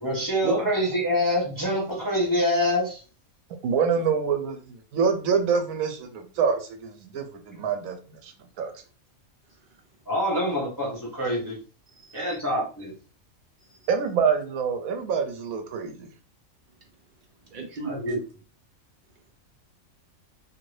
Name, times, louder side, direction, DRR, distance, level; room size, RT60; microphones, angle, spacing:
voice 1, 0.0-3.0 10.1-11.6 12.1-12.9 17.8-18.2, equal, 20° left, -4 dB, 0.6 m, -26 dB
voice 2, 3.6-8.7 13.9-16.1, right 6 dB, 80° right, 5 dB, 1.0 m, -26 dB
voice 3, 11.9-12.4 13.6-13.9 17.4-18.0, right 4 dB, 45° right, 1 dB, 0.7 m, -39 dB
2.6 x 2.6 x 3.1 m, 0.37 s
omnidirectional pair, 1.5 m